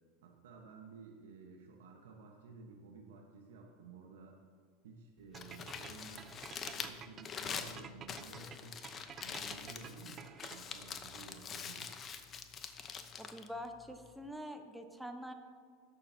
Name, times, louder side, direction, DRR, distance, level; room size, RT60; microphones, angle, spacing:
voice 1, 0.2-4.4 4.8-8.8 9.2-11.9, right 4 dB, 80° right, 0 dB, 1.2 m, -54 dB
Crumpling crinkling, 5.2-14.3, left 6 dB, 35° left, 0.8 m, -45 dB
sound 1, 5.3-10.9, right 8 dB, 35° right, 0.5 m, -51 dB
voice 2, 13.2-15.3, equal, 5° right, 5 dB, 1.0 m, -45 dB
18.0 x 6.9 x 2.8 m, 2.1 s
hypercardioid pair, 100°, 0 cm